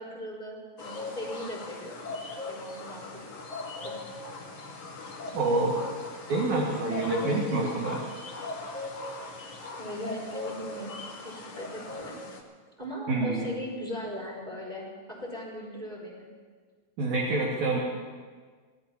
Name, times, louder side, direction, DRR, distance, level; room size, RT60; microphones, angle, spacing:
voice 1, 0.0-2.1 2.4-3.2 3.8-3.9 9.7-11.0 11.2-12.1 12.8-16.3, equal, 10° right, -7 dB, 4.5 m, -39 dB
sound 1, 0.8-12.4, left 2 dB, 50° left, 2.6 m, -39 dB
voice 2, 5.3-5.8 6.3-8.0 13.1-13.4 17.0-17.8, right 2 dB, 55° right, -4 dB, 3.2 m, -27 dB
26.0 x 18.5 x 3.0 m, 1.5 s
omnidirectional pair, 4.3 m